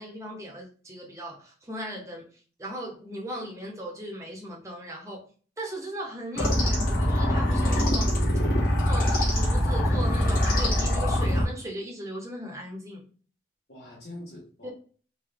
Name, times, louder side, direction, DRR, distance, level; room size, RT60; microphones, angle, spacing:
voice 1, 0.0-2.3 2.6-5.2 5.6-8.1 8.9-13.1 14.6-14.7, right 1 dB, 15° right, 0.9 m, -37 dB
sound 1, 6.4-11.5, equal, 50° left, 1.4 m, -23 dB
voice 2, 8.2-8.6 13.7-14.7, left 1 dB, 70° left, 1.7 m, -44 dB
3.7 x 2.7 x 3.4 m
head